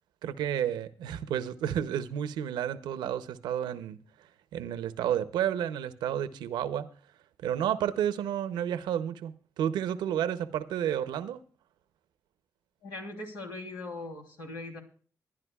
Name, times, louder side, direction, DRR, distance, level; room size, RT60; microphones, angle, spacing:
voice 1, 0.2-6.9 7.4-11.4, right 10 dB, 85° right, 0.7 m, -31 dB
voice 2, 12.8-14.8, left 2 dB, 90° left, 3.1 m, -40 dB
23.5 x 10.5 x 2.3 m
supercardioid pair, 50°, 7 cm